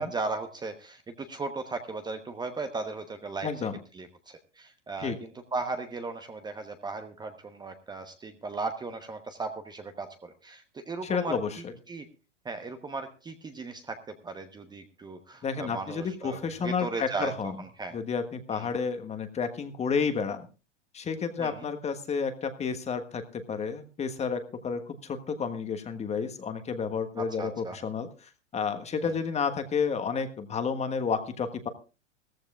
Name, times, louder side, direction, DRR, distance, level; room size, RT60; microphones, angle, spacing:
voice 1, 0.0-3.7 3.9-11.4 11.9-12.1 12.4-17.9 18.5-18.7 21.4-21.7 27.2-27.8 29.0-29.1, right 3 dB, 10° right, 7 dB, 1.0 m, -37 dB
voice 2, 3.4-3.8 5.0-5.2 11.0-11.7 15.4-17.5 17.9-20.5 20.9-31.7, left 5 dB, 20° left, 8 dB, 1.4 m, -31 dB
18.0 x 14.5 x 2.4 m, 0.33 s
figure-of-eight pair, 100°, 36 cm